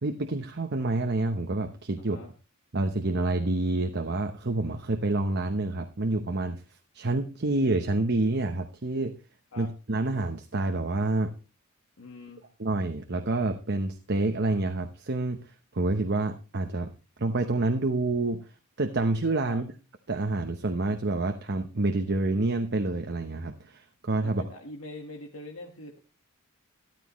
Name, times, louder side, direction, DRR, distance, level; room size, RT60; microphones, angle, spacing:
voice 1, 0.0-2.2 2.7-6.6 6.9-9.1 9.6-11.3 12.6-15.4 15.7-16.9 17.2-18.4 18.8-19.7 20.1-24.4, right 2 dB, 50° right, 5 dB, 0.9 m, -28 dB
voice 2, 2.0-2.3 9.5-9.7 12.0-12.5 19.4-19.6 24.2-26.0, left 2 dB, 70° left, 0 dB, 1.6 m, -43 dB
13.5 x 12.5 x 3.1 m, 0.31 s
head